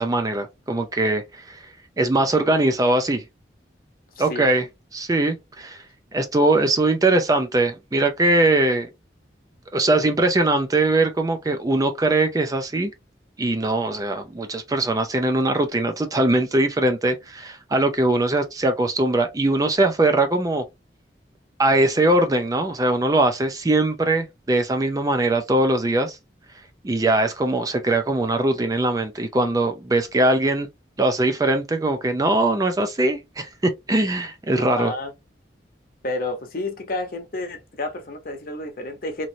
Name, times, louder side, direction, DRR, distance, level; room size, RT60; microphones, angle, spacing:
voice 1, 0.0-1.6 2.0-3.2 4.2-4.7 4.9-5.8 6.1-8.9 9.7-12.9 13.4-20.6 21.6-26.2 26.8-30.7 31.0-34.9, right 2 dB, 20° right, 0.4 m, -21 dB
voice 2, 4.2-4.5 34.6-35.1 36.0-39.3, left 2 dB, 50° left, 0.8 m, -30 dB
3.0 x 2.6 x 2.6 m
head